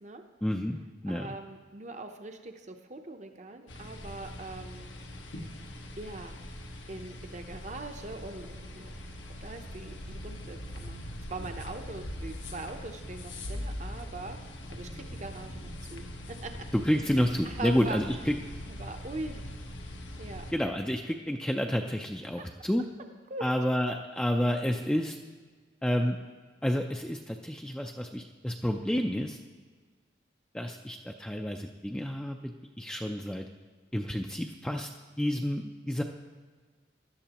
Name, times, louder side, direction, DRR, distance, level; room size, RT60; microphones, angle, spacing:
voice 1, 0.4-1.3 16.7-18.3 20.5-22.8 23.4-25.2 25.8-26.2 26.6-29.4 30.5-33.4 33.9-34.9 35.2-36.0, equal, 5° left, 2 dB, 0.4 m, -30 dB
voice 2, 1.1-4.9 6.0-6.4 6.9-11.0 11.3-14.4 14.7-16.0 16.4-16.5 17.1-18.0 18.6-19.5 20.2-20.4 22.4-22.5 23.3-23.4, right 2 dB, 40° right, 5 dB, 0.7 m, -42 dB
sound 1, 3.7-20.5, left 1 dB, 90° left, 1.2 m, -42 dB
17.0 x 11.5 x 2.9 m, 1.5 s
head